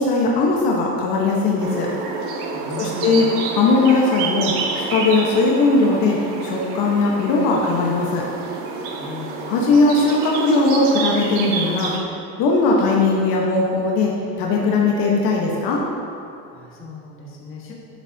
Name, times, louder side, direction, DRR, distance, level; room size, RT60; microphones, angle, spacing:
voice 1, 0.0-1.9 2.8-8.2 9.5-11.9 12.4-14.1 14.4-15.8, left 3 dB, 65° left, -2 dB, 1.3 m, -19 dB
sound 1, 1.6-12.0, right 4 dB, 90° right, 1.3 m, -28 dB
voice 2, 2.5-3.3 8.9-9.6 16.5-17.7, left 3 dB, 35° left, -4 dB, 1.7 m, -37 dB
11.0 x 9.6 x 2.8 m, 2.6 s
cardioid pair, 165°, 38 cm